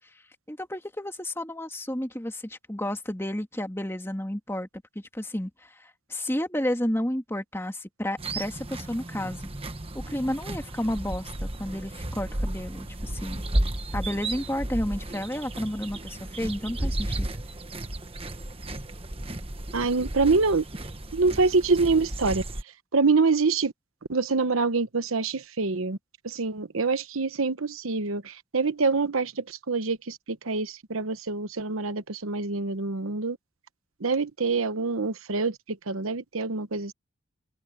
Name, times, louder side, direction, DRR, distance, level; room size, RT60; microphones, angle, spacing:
voice 1, 0.5-4.7 5.1-9.5 9.9-13.4 13.9-17.3, left 1 dB, 10° left, 2.3 m, -31 dB
sound 1, 8.2-22.6, right 1 dB, 25° right, 1.3 m, -33 dB
voice 2, 19.7-20.6 21.1-22.4 22.9-23.7 24.1-26.0 26.2-33.4 34.0-35.6 35.9-36.9, right 4 dB, 85° right, 1.0 m, -25 dB
open air
head